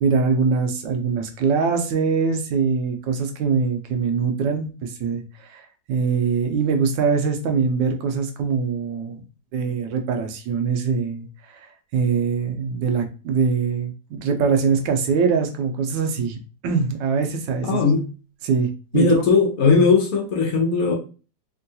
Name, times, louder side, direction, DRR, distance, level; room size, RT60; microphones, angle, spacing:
voice 1, 0.0-9.2 9.5-11.7 11.9-16.4 16.6-17.8 18.4-19.2, right 5 dB, 85° right, 1.3 m, -23 dB
voice 2, 17.6-18.1 18.9-20.9, left 4 dB, 65° left, 1.0 m, -18 dB
3.6 x 2.2 x 2.6 m
omnidirectional pair, 1.9 m